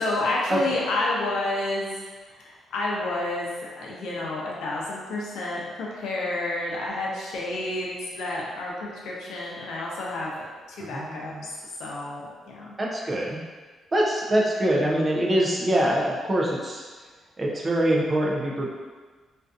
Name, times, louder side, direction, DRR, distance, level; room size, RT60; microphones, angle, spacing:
voice 1, 0.0-1.9 2.3-3.5 3.8-10.5 10.8-11.3 11.8-12.7, left 2 dB, 80° left, -4 dB, 0.6 m, -29 dB
voice 2, 10.8-11.4 12.8-13.4 13.9-16.8 17.4-18.7, right 1 dB, 20° right, -2 dB, 0.3 m, -24 dB
2.5 x 2.4 x 2.4 m, 1.4 s
cardioid pair, 175°, 0 cm